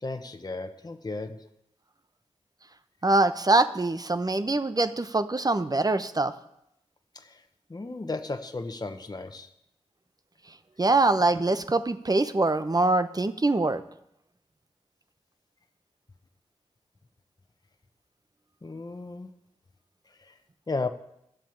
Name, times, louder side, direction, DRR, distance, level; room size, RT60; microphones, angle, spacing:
voice 1, 0.0-1.5 7.1-7.3 7.7-9.5 18.6-19.3 20.7-20.9, left 3 dB, 35° left, 7 dB, 1.1 m, -34 dB
voice 2, 3.0-6.3 10.8-13.8, right 2 dB, 30° right, 12 dB, 0.9 m, -24 dB
11.5 x 7.4 x 8.8 m, 0.79 s
cardioid pair, 40°, 12 cm